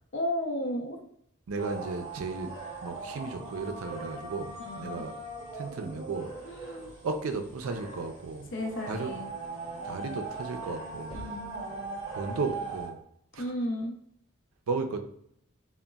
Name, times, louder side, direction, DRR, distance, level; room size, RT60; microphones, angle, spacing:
voice 1, 0.1-1.0 4.6-5.0 6.4-6.9 8.5-9.3 11.1-11.6 13.4-13.9, left 1 dB, 55° left, 2 dB, 0.6 m, -33 dB
voice 2, 1.5-2.5 2.8-5.1 5.5-6.8 7.0-8.5 8.9-9.1 9.8-11.2 12.1-13.0 13.3-13.5 14.7-15.0, right 4 dB, 85° right, 6 dB, 0.4 m, -34 dB
sound 1, 1.6-12.9, right 3 dB, 20° right, 0.7 m, -40 dB
3.9 x 2.1 x 2.2 m, 0.69 s
head